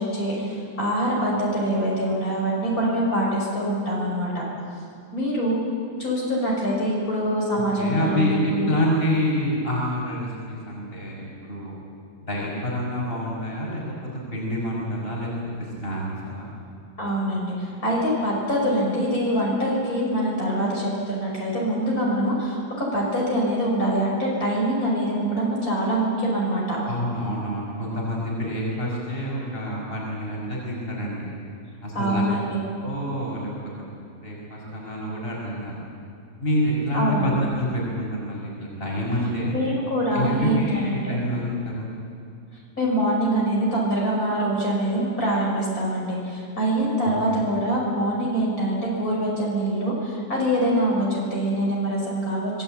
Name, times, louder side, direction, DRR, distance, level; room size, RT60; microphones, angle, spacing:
voice 1, 0.0-4.4 5.1-5.6 6.0-8.3 8.6-8.7 17.0-26.8 31.9-32.6 36.9-37.3 39.5-41.2 42.8-52.6, right 1 dB, 60° left, -4 dB, 6.8 m, -24 dB
voice 2, 7.8-11.8 12.3-13.8 14.3-16.5 26.8-31.3 31.8-32.2 32.8-33.5 34.2-35.8 36.4-37.3 37.6-39.5 40.1-41.9 47.0-47.4, equal, 35° left, -3 dB, 5.9 m, -27 dB
26.0 x 20.5 x 8.9 m, 2.4 s
omnidirectional pair, 1.7 m